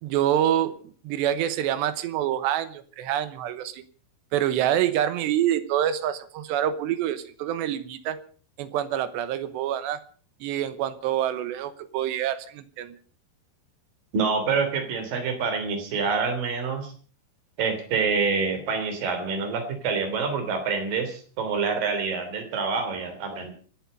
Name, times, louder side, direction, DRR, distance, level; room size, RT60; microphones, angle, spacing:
voice 1, 0.0-3.8 4.3-8.2 8.6-10.0 10.4-13.0, right 11 dB, 80° right, 13 dB, 3.2 m, -26 dB
voice 2, 14.1-16.9 17.6-23.5, right 5 dB, 55° right, 7 dB, 4.7 m, -26 dB
27.5 x 9.5 x 5.3 m, 0.42 s
omnidirectional pair, 5.0 m